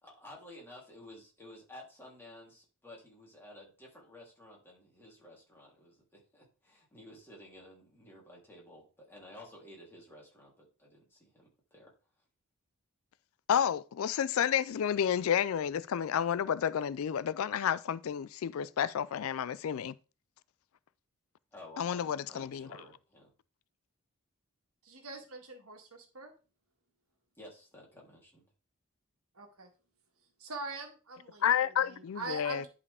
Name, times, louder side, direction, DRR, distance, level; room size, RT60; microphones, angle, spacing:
voice 1, 0.0-11.9 21.5-23.3 27.4-28.4, left 1 dB, 10° left, 3.2 m, -53 dB
voice 2, 13.5-19.9 21.8-22.7 31.4-32.6, left 9 dB, 70° left, 0.4 m, -30 dB
voice 3, 24.8-26.3 29.4-29.7 30.4-31.5 31.8-32.7, right 3 dB, 75° right, 1.8 m, -43 dB
11.0 x 4.9 x 3.5 m
head